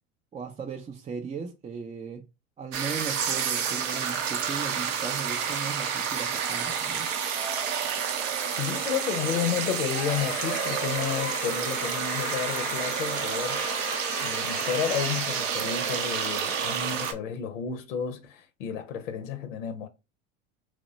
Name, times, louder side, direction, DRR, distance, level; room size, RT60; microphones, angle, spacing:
voice 1, 0.3-2.2 2.6-7.1, right 6 dB, 20° right, 0.4 m, -37 dB
sound 1, 2.7-17.1, right 7 dB, 80° right, 0.7 m, -29 dB
voice 2, 8.6-13.6 14.2-19.9, left 8 dB, 85° left, 0.6 m, -31 dB
Screaming, 9.9-16.4, left 10 dB, 40° left, 0.4 m, -39 dB
3.1 x 2.1 x 3.8 m
hypercardioid pair, 90°, 37 cm